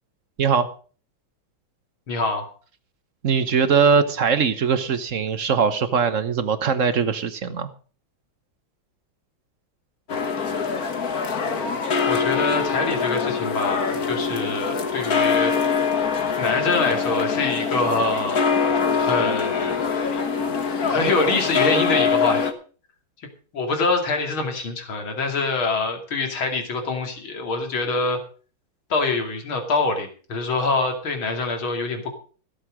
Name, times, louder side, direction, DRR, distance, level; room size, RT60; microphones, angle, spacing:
voice 1, 0.4-0.7 3.2-7.7, right 6 dB, 45° right, 11 dB, 1.2 m, -21 dB
voice 2, 2.1-2.5 12.1-15.5 16.4-18.4 18.9-19.9 20.9-22.5 23.5-28.2 28.9-32.1, left 3 dB, 80° left, 4 dB, 3.5 m, -25 dB
sound 1, 10.1-22.5, left 5 dB, 50° left, 1.9 m, -23 dB
16.5 x 7.9 x 6.3 m, 0.40 s
omnidirectional pair, 2.2 m